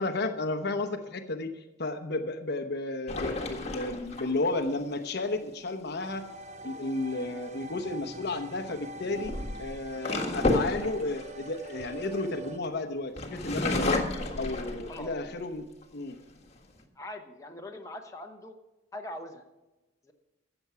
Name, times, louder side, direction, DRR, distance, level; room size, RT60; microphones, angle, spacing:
voice 1, 0.0-6.3 6.6-14.1 14.4-15.7 15.9-16.2, left 2 dB, 55° left, 8 dB, 0.9 m, -33 dB
sound 1, 3.1-4.7 7.6-7.9 8.9-12.7 13.2-15.3 15.8-15.9 16.3-16.8, left 2 dB, 35° left, 1.5 m, -32 dB
sound 2, 6.0-12.6, right 2 dB, 35° right, 0.6 m, -44 dB
voice 2, 17.0-18.5 18.9-19.4 20.0-20.1, left 1 dB, 15° left, 2 dB, 1.0 m, -42 dB
14.0 x 7.9 x 5.8 m, 1.1 s
head